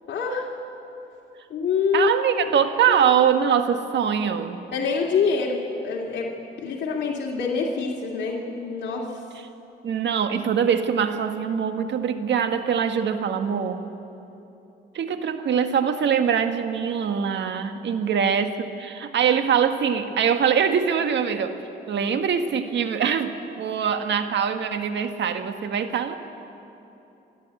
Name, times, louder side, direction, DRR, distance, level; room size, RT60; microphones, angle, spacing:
voice 1, 0.1-0.5 1.5-2.1 2.4-2.5 2.9-3.0 4.7-5.6 5.8-6.3 6.6-9.1, left 5 dB, 60° left, -3 dB, 2.5 m, -25 dB
voice 2, 1.9-4.6 9.8-13.9 14.9-21.6 21.9-26.2, right 7 dB, 65° right, 7 dB, 1.5 m, -23 dB
28.0 x 11.5 x 8.3 m, 2.9 s
cardioid pair, 90°, 20 cm